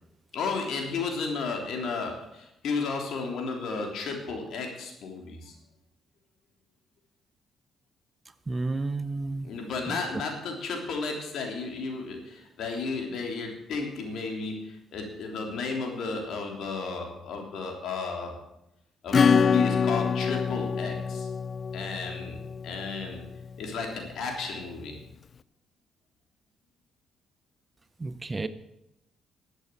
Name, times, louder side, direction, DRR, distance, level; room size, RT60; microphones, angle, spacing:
voice 1, 0.3-5.5 9.4-18.4 19.0-21.3 21.7-22.4 22.6-23.2 23.6-25.0, left 4 dB, 75° left, 2 dB, 3.2 m, -33 dB
voice 2, 8.5-9.5 9.9-10.0 28.0-28.5, right 3 dB, 25° right, 13 dB, 0.8 m, -31 dB
Acoustic guitar / Strum, 19.1-23.4, left 6 dB, 45° left, 0.4 m, -25 dB
12.5 x 8.2 x 8.3 m, 0.86 s
cardioid pair, 90°, 0 cm